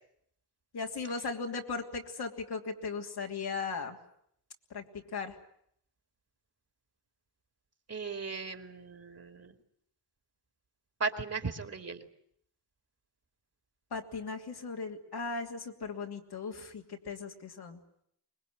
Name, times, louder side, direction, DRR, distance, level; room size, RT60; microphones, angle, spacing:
voice 1, 0.7-4.0 4.7-5.4 13.9-17.8, left 4 dB, 70° left, 2 dB, 3.1 m, -37 dB
voice 2, 7.9-9.5 11.0-12.1, right 4 dB, 40° right, 7 dB, 2.7 m, -37 dB
25.0 x 20.5 x 9.5 m, 0.71 s
cardioid pair, 80°, 40 cm